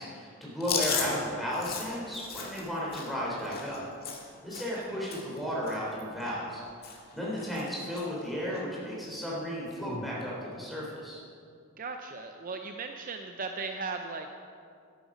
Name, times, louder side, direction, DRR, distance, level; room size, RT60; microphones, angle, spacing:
voice 1, 0.0-3.8 4.4-11.2, equal, ahead, -6 dB, 3.5 m, -34 dB
Chewing mastication, 0.6-4.8 5.1-5.4 5.6-6.6 6.8-7.1 7.4-8.1 8.5-8.6 9.7-10.1, left 5 dB, 50° left, 1.8 m, -36 dB
voice 2, 11.8-14.3, right 4 dB, 40° right, 5 dB, 0.6 m, -37 dB
12.5 x 11.0 x 5.1 m, 2.3 s
head